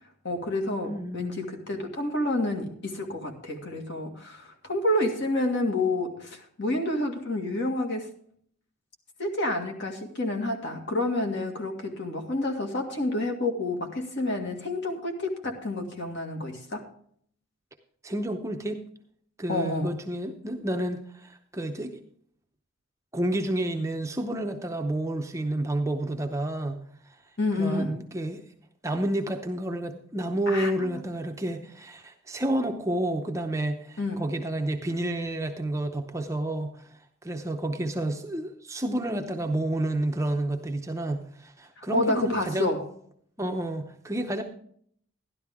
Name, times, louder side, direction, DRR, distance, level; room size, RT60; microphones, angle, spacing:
voice 1, 0.2-8.1 9.2-16.9 19.5-19.9 27.4-28.0 30.5-30.9 34.0-34.3 41.8-42.9, left 1 dB, 50° left, 3 dB, 2.0 m, -29 dB
voice 2, 0.8-1.4 18.0-18.8 19.4-22.0 23.1-26.8 27.6-28.4 28.8-36.9 37.2-42.7 43.4-44.4, right 1 dB, 15° right, 4 dB, 0.7 m, -30 dB
12.0 x 12.0 x 3.6 m, 0.62 s
head